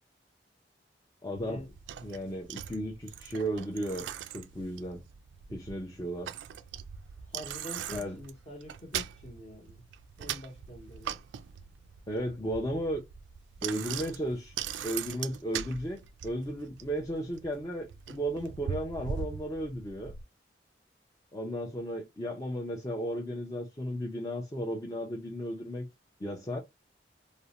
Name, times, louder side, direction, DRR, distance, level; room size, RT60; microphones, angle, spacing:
voice 1, 1.2-1.6 2.0-4.1 4.3-5.0 5.5-6.3 7.9-8.2 12.1-13.0 13.6-14.6 14.8-20.1 21.3-25.9 26.2-26.6, equal, 20° left, 0.5 m, -34 dB
Bicycle, 1.4-20.2, right 8 dB, 90° right, 0.3 m, -41 dB
voice 2, 7.2-9.9 10.2-11.2, left 1 dB, 35° left, 0.9 m, -46 dB
2.5 x 2.1 x 2.8 m
head